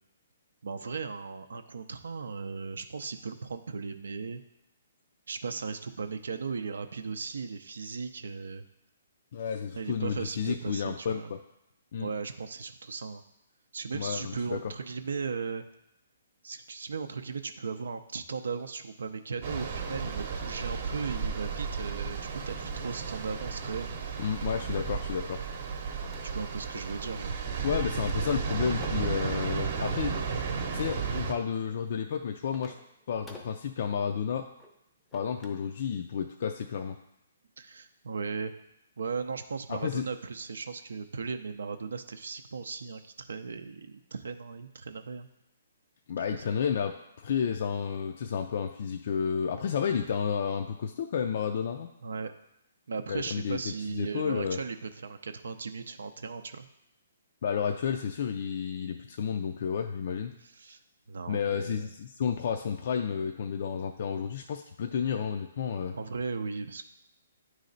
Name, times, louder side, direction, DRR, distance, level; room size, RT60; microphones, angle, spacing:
voice 1, 0.6-4.4 5.3-8.6 9.7-11.3 12.0-13.2 13.7-15.6 16.4-23.9 26.2-27.3 37.6-38.5 39.0-45.3 46.3-46.4 52.0-52.3 52.9-56.7 60.4-60.8 61.1-61.9 65.9-66.8, right 5 dB, 85° right, 8 dB, 0.5 m, -37 dB
voice 2, 9.3-11.4 11.9-12.1 13.9-14.7 24.2-25.5 27.6-30.1 30.7-32.8 33.1-34.5 35.1-37.0 39.7-40.1 46.1-51.9 53.1-54.6 57.4-60.3 61.3-65.9, left 7 dB, 50° left, 5 dB, 0.3 m, -31 dB
sound 1, 19.4-31.3, right 5 dB, 45° right, 0.8 m, -34 dB
sound 2, 25.9-26.7 27.0-27.5 27.8-29.2 29.9-30.9 31.6-35.7 36.0-36.2, left 1 dB, 5° left, 0.6 m, -53 dB
9.3 x 3.2 x 3.9 m, 0.84 s
hypercardioid pair, 160°, 0 cm